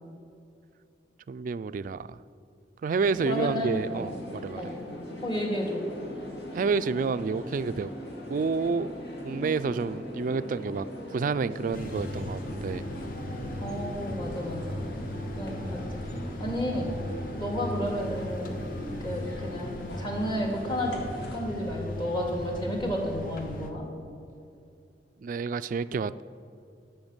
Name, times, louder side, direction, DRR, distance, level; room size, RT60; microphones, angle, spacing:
voice 1, 1.3-2.2 2.8-4.6 6.5-7.9 8.3-8.9 9.2-10.9 11.1-12.8 25.2-26.2, right 5 dB, 50° right, 15 dB, 0.3 m, -29 dB
sound 1, 3.0-21.4, equal, 70° left, 2.1 m, -40 dB
voice 2, 3.2-4.1 4.6-4.7 5.2-5.8 13.6-14.8 15.4-16.9 17.3-18.5 19.0-21.0 21.3-23.9, equal, 25° left, 0 dB, 2.1 m, -32 dB
sound 2, 11.7-23.7, left 1 dB, 50° left, 0.9 m, -37 dB
13.5 x 5.8 x 7.2 m, 2.6 s
head